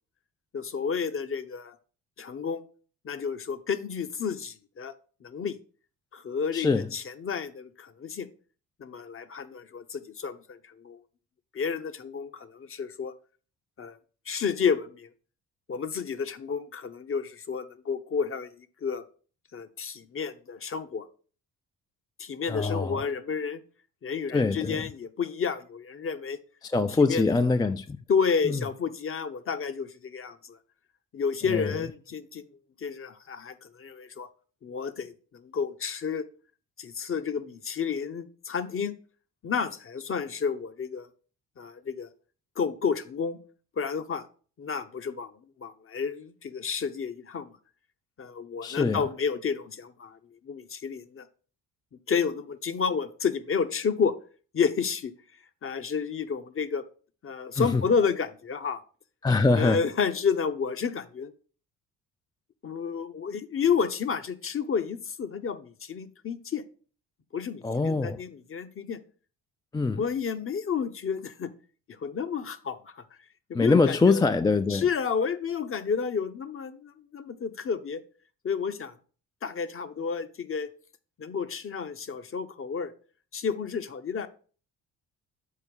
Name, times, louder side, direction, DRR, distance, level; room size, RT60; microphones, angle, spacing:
voice 1, 0.5-1.7 2.2-2.6 3.0-4.9 5.2-5.6 6.1-8.3 8.8-11.0 11.5-13.1 13.8-14.0 14.3-15.1 15.7-19.0 19.5-21.1 22.2-23.6 24.0-26.4 27.0-27.2 28.1-30.6 31.1-32.5 32.8-34.3 34.6-36.3 36.8-38.9 39.4-41.1 41.6-42.1 42.6-43.4 43.8-44.2 44.6-45.3 45.6-47.5 48.2-50.2 50.4-51.3 52.1-54.2 54.5-55.1 55.6-56.8 57.2-58.8 59.6-61.3 62.6-66.6 67.3-69.0 70.0-71.5 72.0-73.0 73.5-74.2 74.7-78.0 78.4-78.9 79.4-80.7 81.2-82.9 83.3-84.3, left 6 dB, 35° left, 0.8 m, -30 dB
voice 2, 6.5-6.9 22.5-23.1 24.3-24.9 26.6-28.0 28.4-28.6 31.5-31.8 48.6-49.1 57.6-57.8 59.2-59.8 67.6-68.2 69.7-70.0 73.5-74.8, left 3 dB, 10° left, 0.3 m, -24 dB
6.5 x 4.4 x 5.3 m
hypercardioid pair, 55°, 37 cm